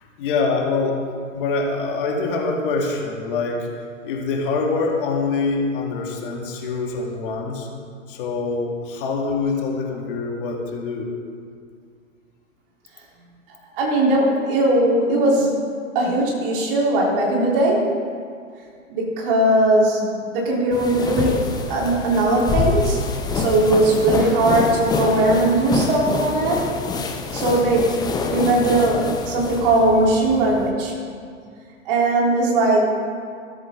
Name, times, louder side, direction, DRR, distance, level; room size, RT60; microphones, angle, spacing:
voice 1, 0.2-1.0 1.3-3.7 4.0-7.7 8.1-11.1, left 4 dB, 40° left, 0 dB, 2.1 m, -24 dB
voice 2, 13.8-15.5 16.0-17.9 18.9-23.0 23.3-26.6 27.3-28.0 28.3-30.9 31.9-32.9, right 2 dB, 40° right, -3 dB, 3.6 m, -19 dB
sound 1, 20.7-30.7, left 4 dB, 10° left, 0.8 m, -26 dB
14.0 x 13.5 x 3.7 m, 2.2 s
figure-of-eight pair, 115°, 39 cm